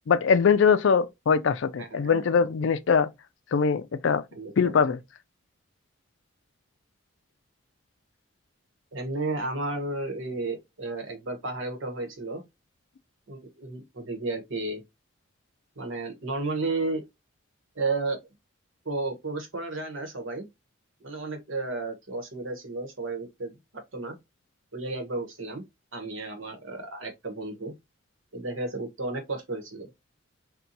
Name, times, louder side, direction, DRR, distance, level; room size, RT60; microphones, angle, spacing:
voice 1, 0.1-3.1 3.5-4.2 4.6-5.0, left 6 dB, 65° left, 0.4 m, -22 dB
voice 2, 1.8-2.5 4.3-4.8 8.9-12.4 13.3-14.8 15.8-17.0 17.8-18.2 18.8-20.4 21.0-23.5 23.9-24.2 24.7-25.6 25.9-27.7 28.3-29.9, right 3 dB, 75° right, 1.0 m, -33 dB
2.7 x 2.2 x 3.8 m
head